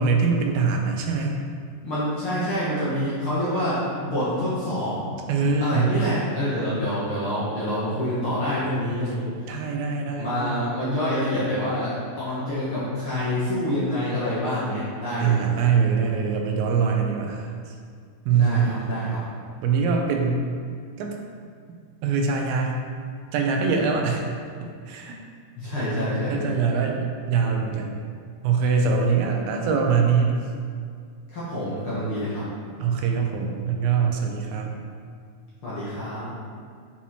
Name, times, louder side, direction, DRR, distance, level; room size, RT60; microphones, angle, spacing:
voice 1, 0.0-1.4 5.3-6.0 9.5-10.7 15.2-17.8 18.3-18.9 19.6-20.4 21.0-21.1 22.0-22.7 23.3-24.2 24.9-25.2 26.3-28.0 28.4-30.4 32.8-34.7, right 5 dB, 85° right, 2 dB, 2.5 m, -23 dB
voice 2, 1.8-5.0 5.6-9.2 10.2-15.4 18.3-19.2 25.6-26.5 31.3-32.5 35.6-36.2, equal, 55° left, -10 dB, 1.5 m, -27 dB
7.1 x 4.3 x 4.5 m, 2.1 s
omnidirectional pair, 4.3 m